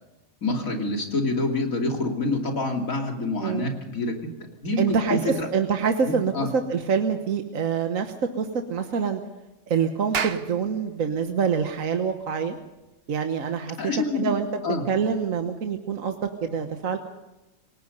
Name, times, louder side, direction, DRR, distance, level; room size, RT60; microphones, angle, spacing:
voice 1, 0.4-4.3 4.6-5.5 6.1-6.5 13.8-14.3 14.6-14.8, left 2 dB, 65° left, 2 dB, 3.3 m, -27 dB
voice 2, 4.8-9.2 9.7-12.6 13.1-13.8 14.1-14.5 14.9-17.0, right 6 dB, 65° right, 6 dB, 1.5 m, -26 dB
Clapping, 10.1-14.8, right 6 dB, 45° right, 1.1 m, -36 dB
28.5 x 18.0 x 5.4 m, 1.0 s
omnidirectional pair, 1.5 m